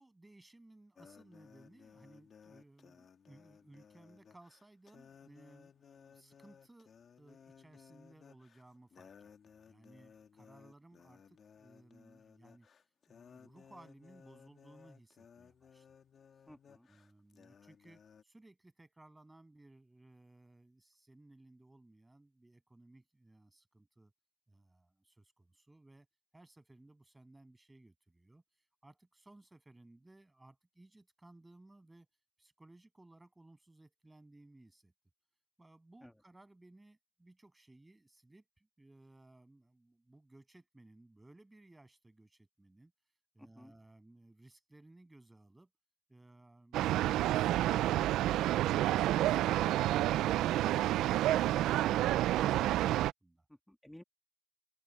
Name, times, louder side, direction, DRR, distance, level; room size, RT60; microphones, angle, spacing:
voice 1, 0.0-12.7 13.1-15.9 16.7-24.1 24.5-26.1 26.3-28.4 28.8-32.1 32.4-34.9 35.6-42.9 43.3-45.7 46.1-47.6 53.2-53.5, right 2 dB, 15° right, 7.8 m, -60 dB
sound 1, 0.9-18.2, left 7 dB, 50° left, 1.9 m, -60 dB
voice 2, 16.5-16.9 36.0-36.1 43.4-43.8 50.7-51.1 51.7-52.4 53.5-54.0, left 1 dB, 5° left, 2.4 m, -56 dB
sound 2, 46.7-53.1, right 14 dB, 90° right, 0.3 m, -29 dB
open air
cardioid pair, 90°, 0 cm